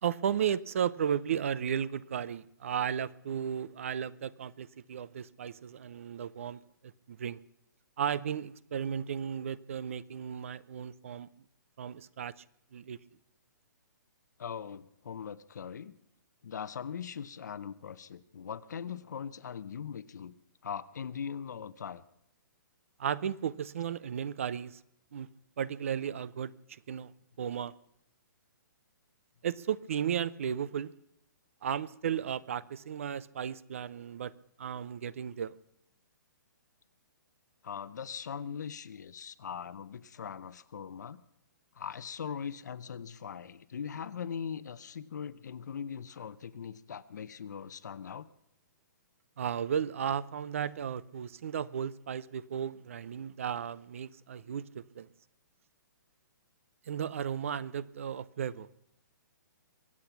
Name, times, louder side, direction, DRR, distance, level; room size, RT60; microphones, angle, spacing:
voice 1, 0.0-6.6 7.1-7.4 8.0-11.3 11.8-12.3 12.7-13.0 23.0-24.8 25.1-25.3 25.6-27.1 27.4-27.7 29.4-30.9 31.6-34.3 34.6-35.6 49.4-55.1 56.9-58.8, right 8 dB, 40° right, 0.5 m, -34 dB
voice 2, 14.4-16.0 16.4-20.3 20.6-22.0 37.6-41.2 41.7-48.3, left 7 dB, 60° left, 0.8 m, -40 dB
23.5 x 8.5 x 5.9 m
hypercardioid pair, 175°, 11 cm